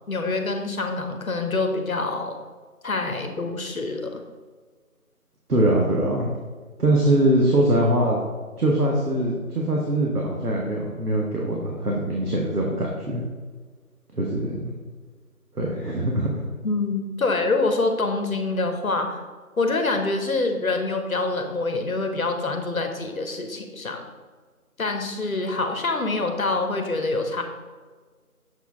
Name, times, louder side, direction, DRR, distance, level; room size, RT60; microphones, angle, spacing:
voice 1, 0.1-2.4 2.8-4.2 16.6-19.2 19.6-24.0 24.8-27.4, left 3 dB, 65° left, 5 dB, 0.9 m, -26 dB
voice 2, 5.5-6.3 6.8-8.2 8.6-13.2 14.1-14.7 15.5-16.5, right 1 dB, 90° right, -2 dB, 1.3 m, -22 dB
6.9 x 4.3 x 3.6 m, 1.5 s
figure-of-eight pair, 170°, 45 cm